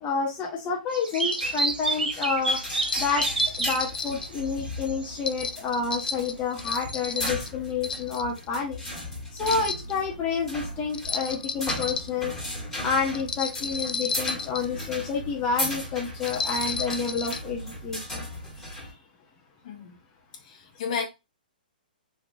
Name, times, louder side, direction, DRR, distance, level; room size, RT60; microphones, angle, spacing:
voice 1, 0.0-2.6 3.0-3.3 3.6-8.8 9.4-12.3 12.8-18.0, left 5 dB, 25° left, 0.8 m, -29 dB
sound 1, 0.9-5.2 6.8-7.3, right 3 dB, 75° right, 0.9 m, -29 dB
sound 2, 1.1-1.4 2.8-4.3 5.2-7.5 7.8-8.4 9.4-9.9 10.9-12.1 13.1-14.8 16.3-17.4, left 4 dB, 70° left, 0.4 m, -32 dB
sound 3, 1.4-18.9, left 1 dB, 10° left, 1.8 m, -37 dB
voice 2, 19.6-20.0 20.4-21.1, left 6 dB, 50° left, 1.1 m, -33 dB
4.4 x 2.7 x 2.6 m
figure-of-eight pair, 120°, 5 cm